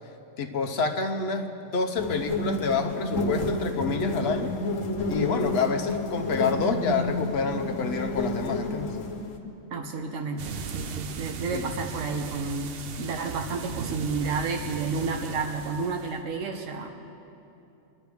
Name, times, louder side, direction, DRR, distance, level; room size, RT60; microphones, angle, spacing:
voice 1, 0.4-4.5 5.1-8.9 11.5-11.7, left 4 dB, 60° left, 6 dB, 1.1 m, -28 dB
sound 1, 2.0-9.4, left 2 dB, 90° left, 1.5 m, -30 dB
voice 2, 9.7-16.9, right 4 dB, 90° right, 3 dB, 1.3 m, -31 dB
sound 2, 10.4-16.2, right 6 dB, 60° right, 0.8 m, -38 dB
24.0 x 10.5 x 3.5 m, 2.8 s
omnidirectional pair, 1.3 m